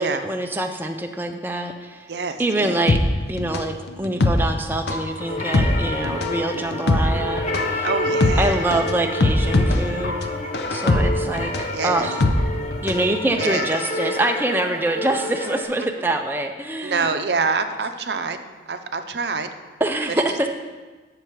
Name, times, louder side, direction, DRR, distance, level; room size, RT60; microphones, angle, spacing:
voice 1, 0.0-2.1 2.4-3.0 3.3-7.9 8.4-10.1 10.7-12.2 12.8-17.1 19.8-20.5, right 1 dB, 10° right, 4 dB, 0.4 m, -25 dB
voice 2, 2.1-2.8 7.8-8.7 11.7-12.1 13.4-13.7 15.8-15.9 16.8-18.4 18.7-19.5 20.3-20.5, right 4 dB, 70° right, 8 dB, 0.6 m, -26 dB
sound 1, 2.9-13.1 13.4-13.5, left 2 dB, 65° left, 0.6 m, -22 dB
sound 2, 5.2-15.6, left 1 dB, 40° left, 1.0 m, -29 dB
9.0 x 6.7 x 4.6 m, 1.3 s
head